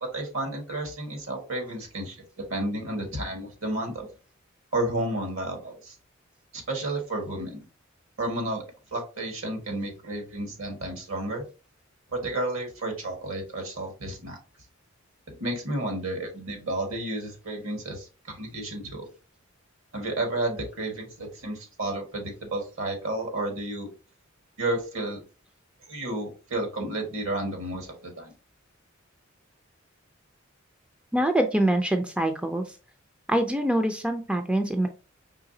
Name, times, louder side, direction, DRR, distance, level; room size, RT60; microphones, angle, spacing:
voice 1, 0.0-4.1 4.7-5.9 6.5-7.6 8.2-8.6 8.9-11.4 12.1-14.4 15.3-19.0 19.9-23.9 24.6-25.2 25.9-28.3, right 1 dB, 70° right, 2 dB, 1.6 m, -31 dB
voice 2, 31.1-32.8 33.3-34.9, right 1 dB, 5° right, 6 dB, 0.4 m, -24 dB
4.8 x 3.2 x 2.7 m, 0.34 s
head